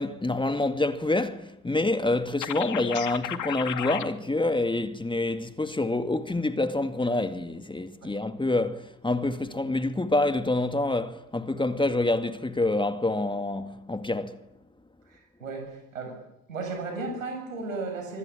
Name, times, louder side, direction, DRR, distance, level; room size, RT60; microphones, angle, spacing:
voice 1, 0.0-14.4, left 2 dB, 10° left, 2.2 m, -27 dB
sound 1, 2.4-4.1, left 11 dB, 50° left, 2.4 m, -33 dB
voice 2, 15.1-16.2 16.5-18.2, right 3 dB, 85° right, 6.8 m, -35 dB
25.0 x 25.0 x 8.8 m
figure-of-eight pair, 55°, 39 cm